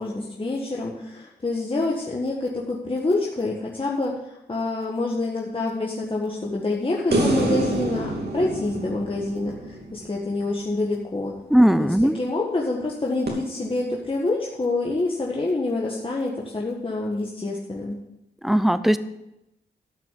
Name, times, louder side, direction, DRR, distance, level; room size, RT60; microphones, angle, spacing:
voice 1, 0.0-11.5 11.8-11.9 12.2-18.0, left 2 dB, 30° left, -3 dB, 1.7 m, -27 dB
sound 1, 7.1-10.4 13.3-13.4, right 2 dB, 65° right, 2.9 m, -26 dB
voice 2, 11.5-12.2 18.4-19.0, equal, ahead, 13 dB, 0.7 m, -18 dB
13.0 x 6.0 x 8.5 m, 0.90 s
wide cardioid pair, 75°, 18 cm